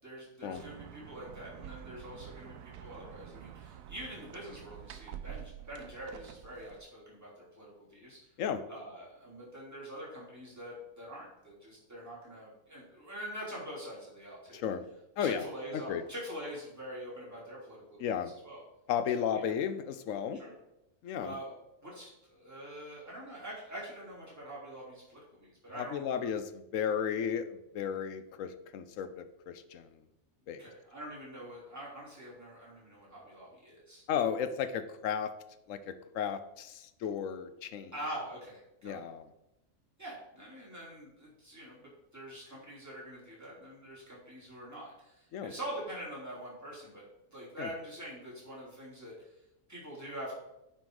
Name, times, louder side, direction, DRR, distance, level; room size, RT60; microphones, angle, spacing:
voice 1, 0.0-8.2 8.7-14.6 15.2-18.6 19.1-19.5 20.3-20.5 21.2-21.5 21.8-26.3 30.6-34.0 37.9-39.0 40.0-47.0 47.3-49.3 49.7-50.4, right 1 dB, 10° right, -7 dB, 3.2 m, -45 dB
sound 1, 0.5-6.8, right 10 dB, 85° right, 1.0 m, -48 dB
voice 2, 14.5-14.8 15.2-15.5 15.7-16.0 18.0-18.3 18.9-20.4 21.0-21.3 25.8-29.9 30.5-30.7 34.1-35.3 35.7-37.9 38.8-39.2 45.3-45.5 47.6-47.7, left 8 dB, 75° left, 11 dB, 1.0 m, -34 dB
9.4 x 4.4 x 4.8 m, 0.89 s
omnidirectional pair, 1.4 m